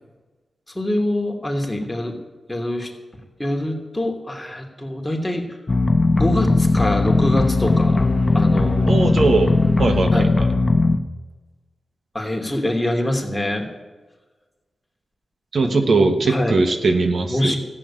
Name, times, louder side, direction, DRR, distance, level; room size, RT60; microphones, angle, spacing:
voice 1, 0.7-2.2 2.5-2.9 3.4-5.6 6.1-8.0 8.3-9.0 10.1-10.3 12.1-13.7 15.7-16.6 17.3-17.6, left 1 dB, 15° left, 1 dB, 3.0 m, -24 dB
sound 1, 5.7-11.0, left 3 dB, 40° left, 1.0 m, -18 dB
voice 2, 8.9-10.3 15.5-17.6, right 3 dB, 65° right, 6 dB, 1.4 m, -20 dB
14.0 x 8.8 x 8.6 m, 1.3 s
cardioid pair, 65°, 0 cm